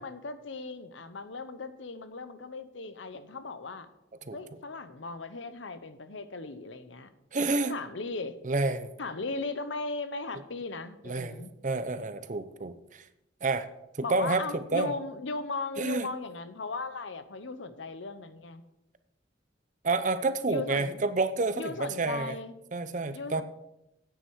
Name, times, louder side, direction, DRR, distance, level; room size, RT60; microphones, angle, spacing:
voice 1, 0.0-3.9 4.3-7.1 7.7-8.4 9.0-11.5 14.0-18.6 20.5-21.0 21.5-22.5 23.1-23.4, left 3 dB, 85° left, 11 dB, 0.9 m, -37 dB
voice 2, 7.3-7.7 8.4-8.9 11.0-13.1 13.4-13.7 14.0-14.9 15.8-16.1 19.8-22.3 22.7-23.4, right 3 dB, 40° right, 11 dB, 0.7 m, -29 dB
9.0 x 7.9 x 6.3 m, 0.87 s
head